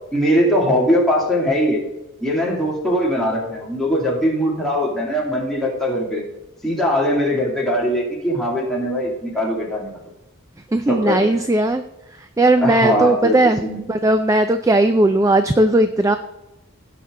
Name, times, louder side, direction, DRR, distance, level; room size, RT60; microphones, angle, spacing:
voice 1, 0.1-1.8 2.2-6.2 6.6-9.9 10.9-11.4 12.6-13.8, equal, ahead, -5 dB, 2.4 m, -20 dB
voice 2, 10.7-11.8 12.4-13.6 13.9-16.2, right 2 dB, 15° right, 9 dB, 0.3 m, -17 dB
16.5 x 5.9 x 3.7 m, 0.92 s
head